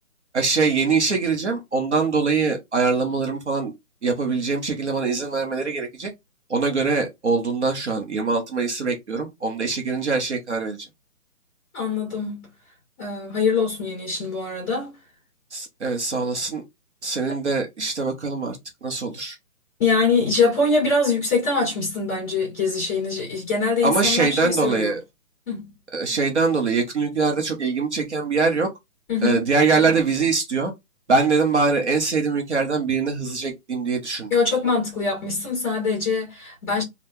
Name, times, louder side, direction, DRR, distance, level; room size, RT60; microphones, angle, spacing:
voice 1, 0.3-3.7 4.0-6.1 6.5-10.8 15.5-16.6 17.0-19.4 23.8-25.0 25.9-28.7 29.2-30.7 31.1-34.3, right 4 dB, 50° right, 0.9 m, -23 dB
voice 2, 11.7-12.5 13.0-14.9 19.8-24.9 25.5-25.7 29.1-29.4 34.3-36.8, left 4 dB, 10° left, 1.5 m, -23 dB
3.6 x 2.3 x 2.7 m
hypercardioid pair, 175°, 43 cm